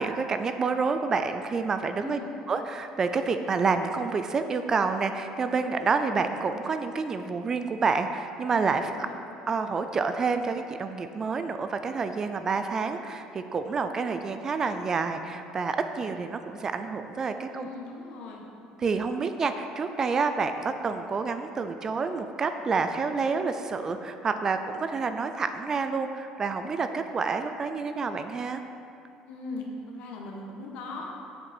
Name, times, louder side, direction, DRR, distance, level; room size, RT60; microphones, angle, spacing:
voice 1, 0.0-2.2 2.5-9.1 9.5-17.7 18.8-28.6, right 4 dB, 25° right, 8 dB, 0.3 m, -28 dB
voice 2, 8.7-9.1 17.5-18.4 29.3-31.1, left 3 dB, 65° left, -1 dB, 1.3 m, -39 dB
7.7 x 6.5 x 4.4 m, 2.6 s
cardioid pair, 155°, 2 cm